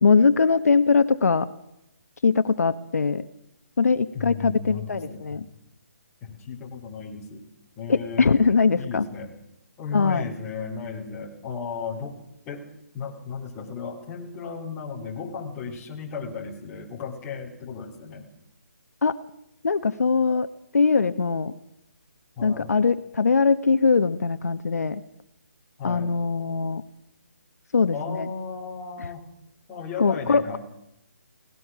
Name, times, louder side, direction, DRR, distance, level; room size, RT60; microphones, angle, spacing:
voice 1, 0.0-1.5 2.2-3.3 3.8-5.4 7.9-9.1 9.9-10.2 19.0-19.1 19.6-20.5 20.7-21.5 22.4-25.0 25.8-26.8 27.7-28.3 30.0-30.6, left 5 dB, 75° left, 11 dB, 1.4 m, -21 dB
voice 2, 4.1-5.5 6.2-7.4 7.8-8.3 8.8-9.3 9.8-12.2 12.5-12.7 12.9-18.3 22.4-22.7 25.8-26.1 27.9-29.3 29.7-30.6, left 5 dB, 15° left, 0 dB, 3.7 m, -35 dB
23.5 x 19.0 x 6.2 m, 0.81 s
hypercardioid pair, 170°, 8 cm